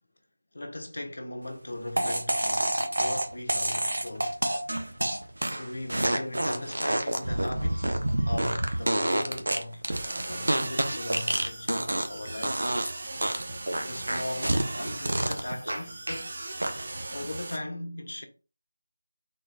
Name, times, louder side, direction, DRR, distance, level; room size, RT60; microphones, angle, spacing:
voice 1, 0.5-4.4 5.5-12.6 13.7-16.3 17.1-18.3, left 1 dB, 75° left, 1.0 m, -38 dB
sound 1, 2.0-12.2 12.4-12.9 13.2-16.2 16.6-17.0, right 1 dB, 85° right, 0.8 m, -28 dB
sound 2, 9.9-17.6, right 2 dB, 45° right, 0.8 m, -38 dB
4.0 x 2.6 x 3.4 m
figure-of-eight pair, 170°, 0 cm